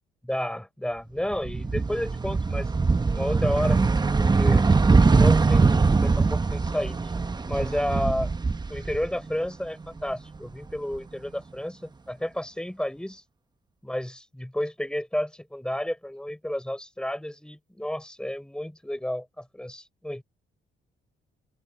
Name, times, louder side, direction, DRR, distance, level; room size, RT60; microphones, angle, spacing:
voice 1, 0.2-2.7 3.1-3.8 4.2-4.7 5.1-5.6 6.0-7.1 7.5-8.3 8.7-13.2 13.8-20.2, left 1 dB, 5° left, 6.2 m, -31 dB
sound 1, 1.3-9.5 9.8-11.0, right 4 dB, 20° right, 1.0 m, -22 dB
open air
cardioid pair, 90°, 20 cm